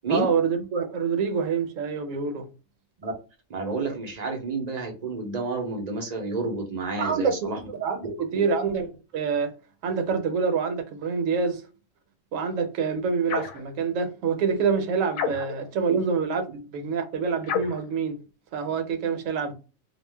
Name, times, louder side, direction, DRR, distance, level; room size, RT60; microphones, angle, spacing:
voice 1, 0.1-2.5 7.0-9.6 9.8-11.6 12.3-18.2 18.5-19.5, right 5 dB, 70° right, 1.0 m, -26 dB
voice 2, 3.5-7.6 8.3-8.4 15.9-16.1, right 3 dB, 45° right, 0.5 m, -30 dB
sound 1, 13.3-13.6 15.1-15.7 17.4-17.9, left 7 dB, 75° left, 1.0 m, -30 dB
2.4 x 2.1 x 3.2 m
omnidirectional pair, 1.4 m